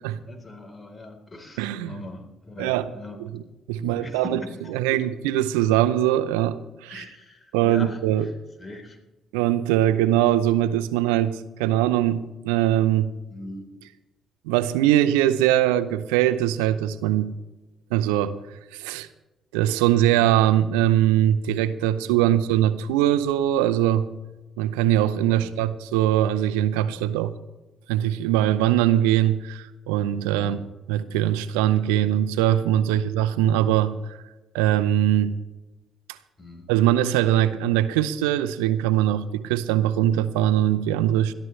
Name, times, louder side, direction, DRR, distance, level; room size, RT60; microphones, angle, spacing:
voice 1, 0.2-3.2 3.8-5.0 6.9-8.3 8.6-9.0 13.3-13.7 20.2-20.3 22.2-22.4 25.3-25.5 26.9-27.2 30.3-30.6 32.7-33.0 36.4-36.7, left 1 dB, 30° left, 4 dB, 3.9 m, -40 dB
voice 2, 1.6-1.9 2.6-2.9 3.3-3.4 3.7-4.4 4.7-7.0 7.5-8.3 9.3-13.1 14.5-17.3 17.9-18.4 18.7-19.1 19.5-24.1 24.6-27.3 27.9-30.6 30.9-34.2 34.5-35.4 36.7-41.3, right 12 dB, 90° right, 12 dB, 0.6 m, -22 dB
21.0 x 14.0 x 3.3 m, 1.1 s
hypercardioid pair, 55°, 0 cm